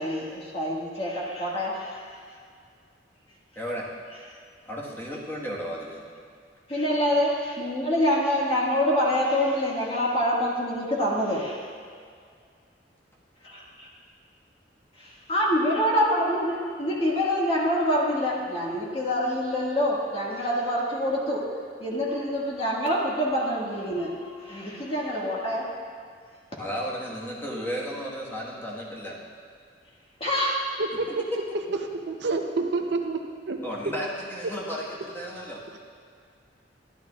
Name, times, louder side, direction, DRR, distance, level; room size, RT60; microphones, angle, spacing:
voice 1, 0.0-2.0 6.7-11.7 13.4-13.6 15.3-21.5 21.8-25.7 26.5-26.6 30.2-30.5, equal, 35° left, -5 dB, 1.7 m, -26 dB
voice 2, 3.5-3.9 4.6-6.0 26.6-29.2 31.1-31.4 33.6-35.6, equal, 10° left, -5 dB, 1.4 m, -34 dB
voice 3, 32.1-33.6, right 3 dB, 70° right, 4 dB, 0.6 m, -28 dB
12.0 x 11.5 x 2.4 m, 2.1 s
head